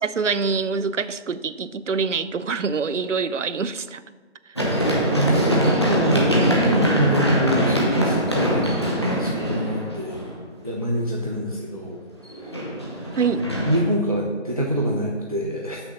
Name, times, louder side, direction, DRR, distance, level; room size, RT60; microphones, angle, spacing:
voice 1, 0.0-4.0 13.2-13.5, right 5 dB, 85° right, 14 dB, 0.6 m, -25 dB
Run, 4.6-10.4 12.3-13.8, equal, 20° left, 0.9 m, -22 dB
voice 2, 4.6-10.3 10.6-12.0 12.4-13.2 13.6-15.8, equal, 30° right, -2 dB, 0.7 m, -25 dB
7.9 x 6.3 x 5.7 m, 1.4 s
figure-of-eight pair, 170°, 36 cm